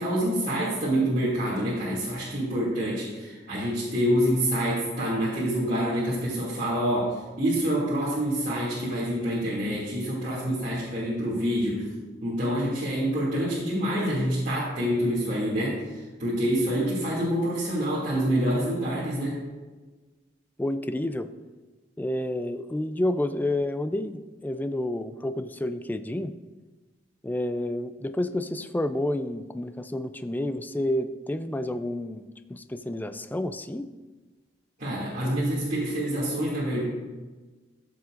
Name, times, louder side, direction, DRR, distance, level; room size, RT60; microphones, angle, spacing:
voice 1, 0.0-11.9 12.2-15.8 16.2-19.4 34.8-36.8, equal, 45° right, -10 dB, 2.3 m, -26 dB
voice 2, 20.6-21.3 22.0-26.3 27.2-32.2 32.5-33.9, left 1 dB, 10° left, 11 dB, 0.3 m, -29 dB
14.5 x 6.9 x 2.5 m, 1.3 s
head